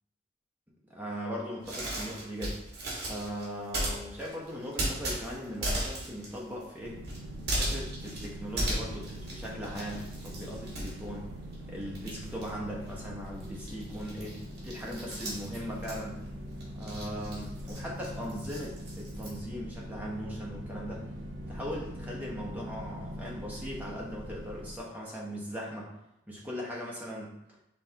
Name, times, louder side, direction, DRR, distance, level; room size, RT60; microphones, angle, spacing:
voice 1, 0.9-2.6 3.0-7.0 7.5-11.2 11.7-16.2 16.7-21.0 21.5-25.9 26.3-27.4, equal, 10° right, -4 dB, 0.9 m, -39 dB
sound 1, 1.6-11.6 11.9-19.4, right 1 dB, 55° right, 1.5 m, -37 dB
sound 2, 6.8-24.8, equal, 75° right, 0.7 m, -42 dB
5.4 x 3.4 x 2.8 m, 0.83 s
head